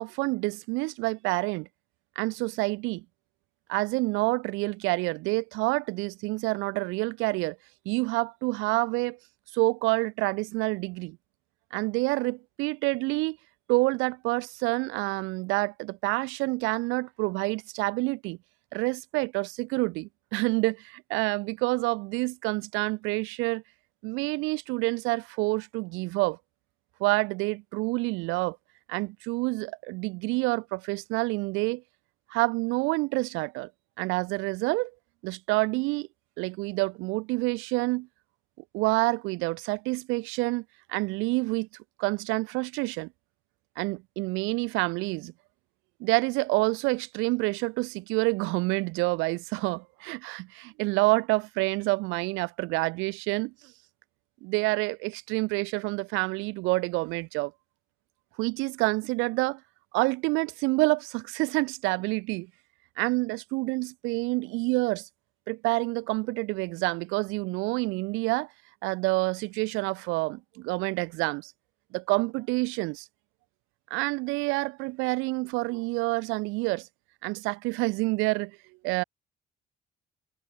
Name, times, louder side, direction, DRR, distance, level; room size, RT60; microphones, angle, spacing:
voice 1, 0.0-1.7 2.2-3.0 3.7-7.6 7.9-9.2 9.5-11.2 11.7-13.4 13.7-18.4 18.7-23.6 24.0-26.4 27.0-28.6 28.9-31.8 32.3-33.7 34.0-34.9 35.2-36.1 36.4-38.1 38.7-41.7 42.0-43.1 43.8-45.3 46.0-53.5 54.4-57.5 58.4-59.6 59.9-62.5 63.0-65.1 65.5-68.5 68.8-71.5 71.9-73.0 73.9-76.9 77.2-78.5 78.8-79.0, right 25 dB, 85° right, 2.6 m, -28 dB
supercardioid pair, 65°, 20 cm